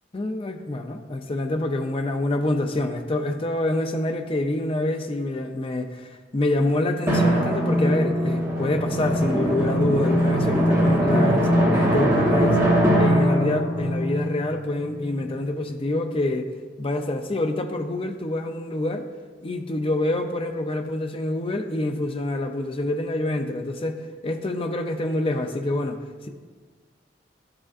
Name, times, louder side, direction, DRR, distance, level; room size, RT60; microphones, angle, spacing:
voice 1, 0.1-12.6 13.0-16.5 16.8-19.1 19.4-26.0 26.2-26.3, left 2 dB, 30° left, 6 dB, 0.5 m, -26 dB
Drum, 7.1-15.4, equal, 15° right, 1.2 m, -21 dB
12.5 x 4.9 x 2.5 m, 1.5 s
head